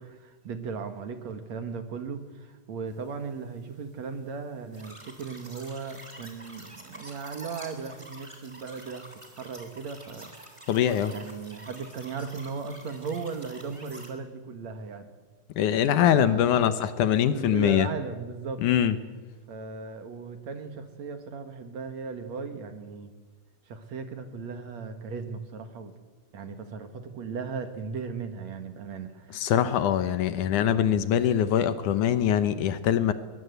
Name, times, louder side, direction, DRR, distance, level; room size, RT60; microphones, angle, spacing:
voice 1, 0.0-10.3 11.1-15.1 16.0-16.4 17.3-18.6 19.5-23.1 23.7-25.9 26.3-29.5, right 5 dB, 60° right, 8 dB, 2.7 m, -37 dB
sound 1, 4.7-14.1, right 1 dB, 10° right, 3.1 m, -47 dB
voice 2, 10.7-11.1 15.6-17.9 18.6-19.0 29.3-33.1, left 10 dB, 70° left, 13 dB, 2.3 m, -23 dB
22.0 x 21.5 x 8.1 m, 1.3 s
omnidirectional pair, 3.9 m